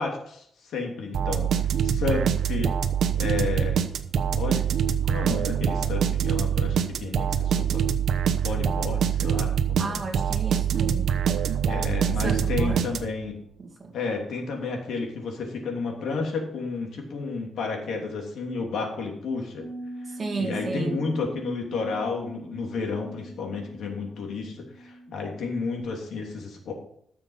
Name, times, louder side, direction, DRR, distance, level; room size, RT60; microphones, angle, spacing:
voice 1, 0.0-1.5 1.8-2.8 3.1-3.8 4.2-4.7 5.0-7.9 8.4-10.0 11.6-13.3 13.9-19.7 20.4-26.7, left 4 dB, 85° left, 1 dB, 3.0 m, -31 dB
sound 1, 1.1-13.3, right 8 dB, 75° right, 1.0 m, -25 dB
voice 2, 9.8-11.1 12.2-12.9 13.6-13.9 20.1-21.0, right 3 dB, 30° right, 2 dB, 2.3 m, -33 dB
Bass guitar, 19.6-25.8, right 1 dB, 5° right, 3.3 m, -42 dB
13.5 x 7.0 x 5.7 m, 0.68 s
wide cardioid pair, 170°, 0 cm